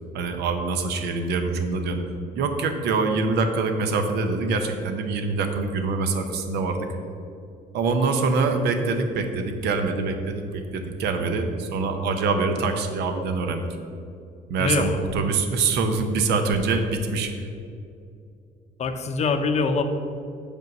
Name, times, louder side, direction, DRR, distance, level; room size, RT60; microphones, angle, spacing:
voice 1, 0.1-2.0 2.3-6.9 7.7-13.7 14.5-17.3, right 4 dB, 80° right, 6 dB, 0.8 m, -24 dB
voice 2, 14.6-15.0 18.8-19.8, left 4 dB, 40° left, 7 dB, 0.7 m, -24 dB
6.3 x 5.3 x 5.3 m, 2.5 s
cardioid pair, 110°, 17 cm